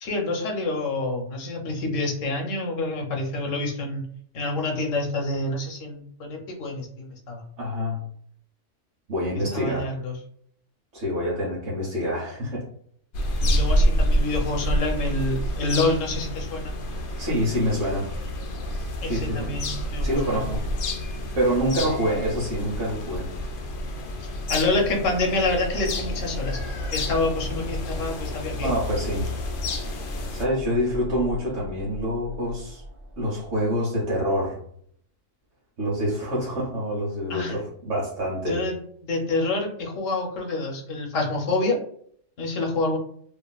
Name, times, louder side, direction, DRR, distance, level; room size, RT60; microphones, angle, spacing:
voice 1, 0.0-4.0 4.3-7.4 9.5-10.2 13.4-16.7 19.0-20.4 24.2-26.6 26.9-28.7 37.3-37.6 38.5-38.8 39.0-41.8 42.4-43.0, left 2 dB, 85° left, 1 dB, 1.1 m, -27 dB
voice 2, 7.6-8.1 9.1-9.9 10.9-12.6 17.2-18.1 19.0-19.5 20.0-20.6 21.3-23.3 28.5-29.3 30.3-32.8 33.2-34.6 35.8-38.6, equal, 80° right, -6 dB, 1.2 m, -26 dB
sound 1, 13.1-30.4, equal, 60° left, 0.5 m, -28 dB
sound 2, 24.4-33.6, equal, 55° right, 0.5 m, -37 dB
2.8 x 2.4 x 2.2 m, 0.62 s
omnidirectional pair, 1.3 m